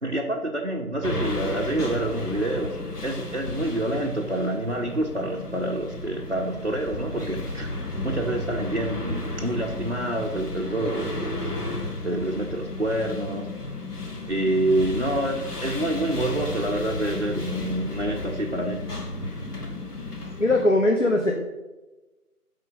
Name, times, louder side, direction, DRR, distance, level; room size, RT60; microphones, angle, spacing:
voice 1, 0.0-11.5 12.0-13.5 14.3-18.9 20.2-20.3, right 1 dB, 50° right, -2 dB, 0.5 m, -27 dB
sound 1, 1.0-20.7, left 2 dB, 80° left, 1.2 m, -33 dB
voice 2, 20.4-21.3, left 1 dB, 55° left, 2 dB, 0.6 m, -20 dB
5.2 x 3.7 x 5.1 m, 1.1 s
figure-of-eight pair, 170°, 46 cm